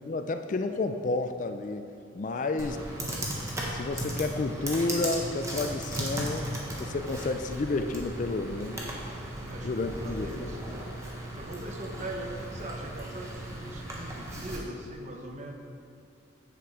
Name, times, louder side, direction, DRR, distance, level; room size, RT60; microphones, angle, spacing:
voice 1, 0.1-1.9 2.1-2.8 3.7-6.5 6.8-8.8 9.6-10.5, left 3 dB, 40° left, 8 dB, 0.3 m, -31 dB
Computer keyboard, 2.6-14.6, right 1 dB, 15° right, 1.0 m, -36 dB
voice 2, 9.5-10.9 11.3-15.5, right 1 dB, 35° right, 2 dB, 0.8 m, -41 dB
8.1 x 6.9 x 4.8 m, 2.5 s
head